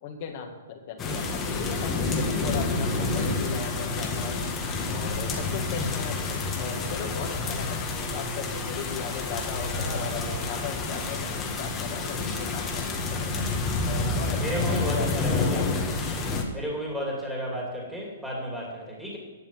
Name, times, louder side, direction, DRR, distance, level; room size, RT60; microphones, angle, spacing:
voice 1, 0.0-4.4 4.8-13.5 13.9-15.8 16.1-16.2 16.6-16.8, left 7 dB, 45° left, 3 dB, 2.0 m, -37 dB
sound 1, 1.0-16.4, left 3 dB, 20° left, 1.7 m, -29 dB
voice 2, 9.7-10.4 10.9-11.1 13.9-15.7 16.5-19.2, equal, ahead, -4 dB, 2.8 m, -33 dB
11.0 x 6.9 x 7.3 m, 1.3 s
hypercardioid pair, 130°, 0 cm